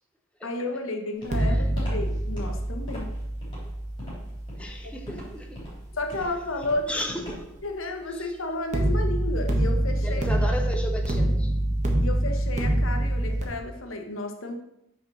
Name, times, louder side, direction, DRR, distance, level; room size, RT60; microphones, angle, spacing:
voice 1, 0.4-3.1 4.8-5.0 6.0-7.0 7.6-10.2 12.0-14.5, left 2 dB, 70° left, 5 dB, 1.1 m, -32 dB
Walk footsteps, 1.2-7.7, left 1 dB, 25° left, 3.4 m, -41 dB
sound 1, 1.2-6.3 8.7-13.4, right 1 dB, 35° right, 1.3 m, -26 dB
voice 2, 1.3-1.7 4.6-5.6 6.9-7.5 8.1-8.4 10.0-11.5, equal, 5° left, 2 dB, 0.9 m, -35 dB
6.3 x 4.9 x 6.2 m, 0.82 s
head